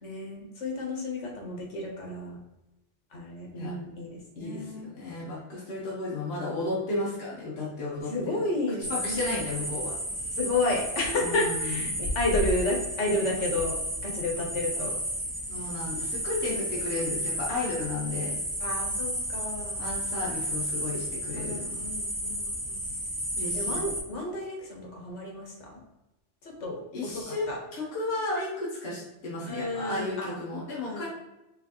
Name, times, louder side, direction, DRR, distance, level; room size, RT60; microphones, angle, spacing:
voice 1, 0.0-2.4 3.1-4.9 8.1-9.3 10.4-13.8 14.0-15.0 18.6-19.9 21.3-22.8 23.5-25.8 26.4-27.6 29.5-30.3 30.9-31.1, left 2 dB, 85° left, 0 dB, 1.4 m, -31 dB
voice 2, 4.4-8.4 8.7-10.0 11.2-12.0 15.5-18.4 19.8-21.8 23.4-23.8 26.9-31.1, left 2 dB, 55° left, -6 dB, 1.3 m, -33 dB
sound 1, 8.8-24.0, equal, 15° right, 1.5 m, -32 dB
4.6 x 3.2 x 2.9 m, 0.95 s
omnidirectional pair, 1.2 m